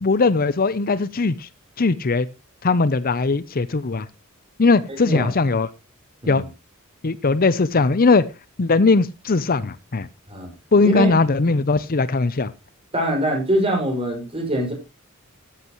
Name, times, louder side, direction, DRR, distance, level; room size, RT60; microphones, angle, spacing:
voice 1, 0.0-1.5 1.8-2.3 2.6-4.1 4.6-5.7 6.3-6.4 7.0-8.2 8.6-10.1 10.7-12.5, left 3 dB, 45° left, 16 dB, 0.6 m, -19 dB
voice 2, 4.9-5.3 6.2-6.5 10.3-10.5 10.8-11.1 12.9-14.7, right 1 dB, 30° right, 3 dB, 5.7 m, -23 dB
14.0 x 11.0 x 3.0 m, 0.26 s
head